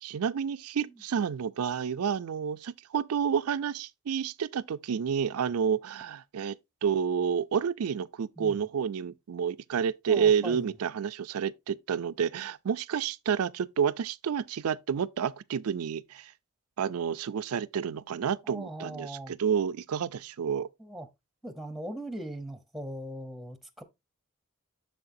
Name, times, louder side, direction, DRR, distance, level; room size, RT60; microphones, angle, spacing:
voice 1, 0.0-6.6 6.8-16.3 16.8-20.7, right 7 dB, 90° right, 0.4 m, -29 dB
voice 2, 10.1-10.7 18.4-19.4 20.8-21.1 21.4-23.8, right 1 dB, ahead, 0.8 m, -40 dB
7.8 x 6.5 x 2.6 m
head